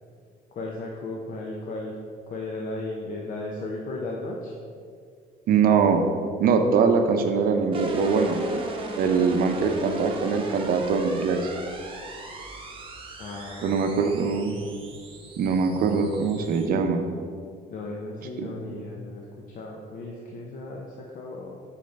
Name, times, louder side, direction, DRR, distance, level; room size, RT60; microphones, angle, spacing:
voice 1, 0.5-2.0 2.3-4.5 13.2-14.0 17.7-21.6, left 2 dB, 50° left, -1 dB, 0.7 m, -35 dB
voice 2, 5.5-6.0 6.4-8.4 9.0-11.5 13.6-14.6 15.4-17.0 18.4-18.8, right 5 dB, 60° right, 6 dB, 0.6 m, -22 dB
sound 1, 7.7-16.7, right 3 dB, 30° right, 0.8 m, -38 dB
5.6 x 5.2 x 3.3 m, 2.2 s
cardioid pair, 110°, 17 cm